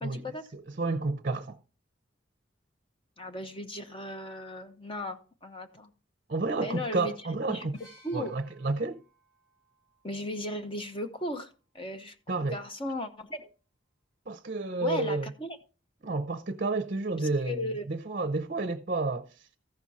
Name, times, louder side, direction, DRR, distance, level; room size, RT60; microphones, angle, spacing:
voice 1, 0.0-0.4 3.2-5.9 6.6-7.1 7.5-7.7 8.0-8.3 10.0-11.5 11.7-12.1 12.5-13.5 14.8-15.6 17.5-17.9, left 1 dB, 25° left, 0.9 m, -36 dB
voice 2, 0.5-1.6 6.3-7.8 8.1-9.0 12.3-12.6 14.3-15.3 16.0-19.4, right 3 dB, 45° right, 0.6 m, -31 dB
sound 1, 7.7-11.5 12.6-12.7, right 1 dB, 75° left, 5.1 m, -62 dB
14.5 x 6.1 x 4.1 m
head